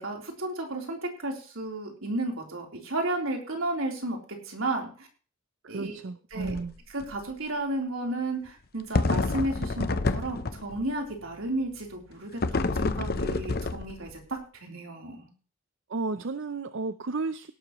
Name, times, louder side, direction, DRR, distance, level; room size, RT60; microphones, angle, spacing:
voice 1, 0.0-4.2 4.4-5.1 5.7-6.0 6.3-6.6 6.9-15.3, right 2 dB, 85° right, 1 dB, 3.7 m, -33 dB
voice 2, 5.6-6.7 15.9-17.5, right 3 dB, 65° right, 11 dB, 0.6 m, -33 dB
sound 1, 6.3-6.7 7.0-7.1 9.0-10.8 12.4-14.2, left 3 dB, 50° left, 0.7 m, -28 dB
17.5 x 11.5 x 3.1 m, 0.37 s
head